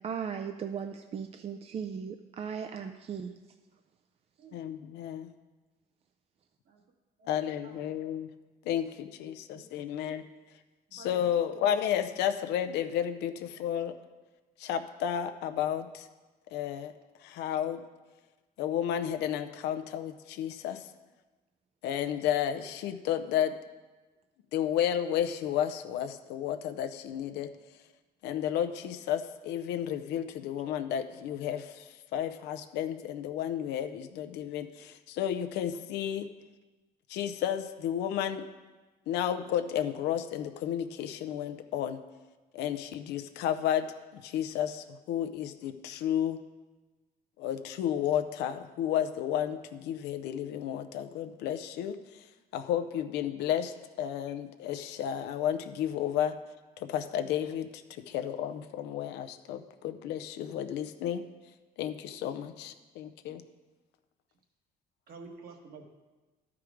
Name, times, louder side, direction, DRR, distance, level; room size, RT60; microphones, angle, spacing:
voice 1, 0.0-3.3, right 7 dB, 35° right, 6 dB, 0.4 m, -37 dB
voice 2, 4.5-5.3 7.3-8.3 8.6-10.2 10.9-14.0 14.6-16.1 16.5-16.9 17.2-17.8 18.6-20.9 21.8-23.6 24.5-27.5 28.2-36.3 37.1-38.5 39.1-42.0 42.5-43.9 44.1-46.4 47.4-52.3 52.5-56.3 56.8-61.2 61.8-63.4, left 10 dB, 85° left, 9 dB, 0.6 m, -32 dB
voice 3, 7.2-7.9 9.0-9.2 9.5-9.7 10.0-10.1 10.9-11.7 65.1-65.8, right 4 dB, 65° right, 2 dB, 1.5 m, -51 dB
11.5 x 4.8 x 4.9 m, 1.2 s
cardioid pair, 110°, 17 cm